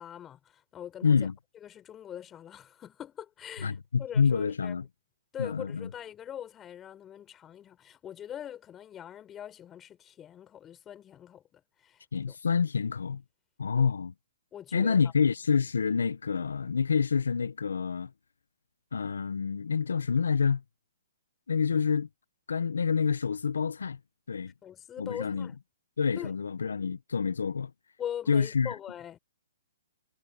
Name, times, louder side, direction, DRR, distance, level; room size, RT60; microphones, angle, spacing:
voice 1, 0.0-1.3 1.6-4.8 5.3-12.4 13.7-13.9 14.5-15.0 24.6-25.6 26.2-26.3 28.0-29.2, left 10 dB, 20° left, 6.1 m, -42 dB
voice 2, 1.0-1.3 3.6-4.8 5.4-5.9 12.1-13.2 13.6-14.1 14.7-18.1 18.9-20.6 21.5-22.1 22.5-24.0 24.3-24.5 25.0-25.5 26.0-27.7 28.3-28.7, left 6 dB, 80° left, 1.4 m, -27 dB
hypercardioid pair, 140°, 0 cm